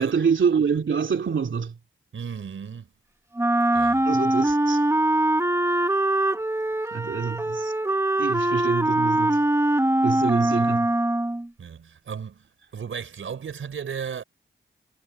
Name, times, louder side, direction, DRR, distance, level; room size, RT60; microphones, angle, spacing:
voice 1, 0.0-1.8 4.0-4.8 6.9-7.7 8.2-9.4 10.0-10.9, right 6 dB, 70° right, 2.6 m, -26 dB
voice 2, 2.1-2.9 3.7-4.1 11.6-12.5 12.7-14.2, right 7 dB, 85° right, 5.1 m, -35 dB
Wind instrument woodwind instrument, 3.4-11.5, right 1 dB, 15° right, 1.5 m, -22 dB
cardioid pair, 55°, 20 cm